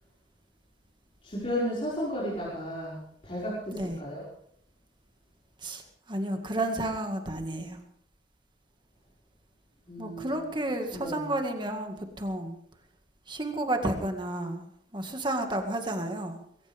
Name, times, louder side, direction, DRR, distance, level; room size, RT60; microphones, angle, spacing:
voice 1, 1.2-4.2 9.9-10.6 10.9-11.3, equal, 35° left, -8 dB, 5.6 m, -34 dB
voice 2, 6.1-7.8 10.0-12.6 13.3-14.7 14.9-16.4, right 1 dB, 25° right, 4 dB, 2.0 m, -31 dB
21.5 x 18.0 x 3.6 m, 0.68 s
head